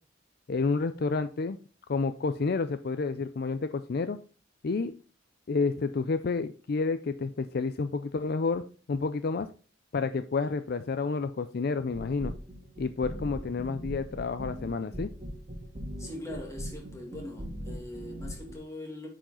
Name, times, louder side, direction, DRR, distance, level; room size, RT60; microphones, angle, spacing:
voice 1, 0.5-1.6 1.9-4.2 4.6-5.0 5.5-9.5 9.9-12.3 12.8-15.1, left 4 dB, 50° left, 0.4 m, -30 dB
sound 1, 11.9-18.5, equal, 30° right, 1.7 m, -40 dB
voice 2, 16.0-19.1, left 1 dB, 15° left, 2.1 m, -41 dB
8.9 x 4.9 x 3.7 m
head